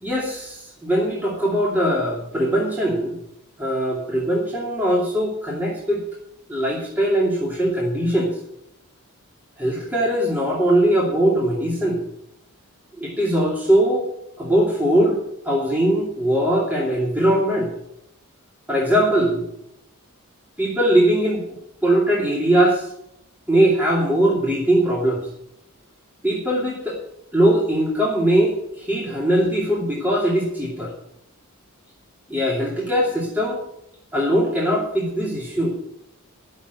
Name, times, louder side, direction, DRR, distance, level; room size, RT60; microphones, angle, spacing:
voice 1, 0.0-3.2 3.6-6.0 6.5-8.3 9.6-12.0 13.0-14.1 14.4-15.2 15.4-17.7 18.7-19.4 20.6-21.4 21.8-22.9 23.5-25.3 26.2-27.0 27.3-30.9 32.3-33.6 34.1-35.7, right 1 dB, 10° right, -5 dB, 2.6 m, -20 dB
11.5 x 7.3 x 8.1 m, 0.78 s
head